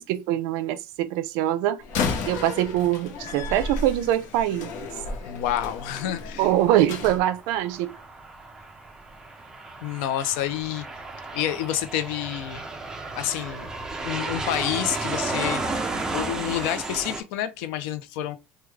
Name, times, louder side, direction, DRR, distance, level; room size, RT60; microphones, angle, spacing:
voice 1, 0.0-1.8 2.2-4.9 6.4-7.9, right 13 dB, 65° right, 0.4 m, -24 dB
Slam, 1.8-7.2, left 4 dB, 55° left, 0.8 m, -32 dB
voice 2, 5.3-6.5 9.8-10.9 11.3-12.6 13.1-13.7 14.0-15.6 16.1-18.4, left 12 dB, 90° left, 0.5 m, -28 dB
Aircraft, 7.0-17.2, right 3 dB, 10° right, 0.4 m, -33 dB
3.4 x 2.2 x 3.1 m
cardioid pair, 170°, 6 cm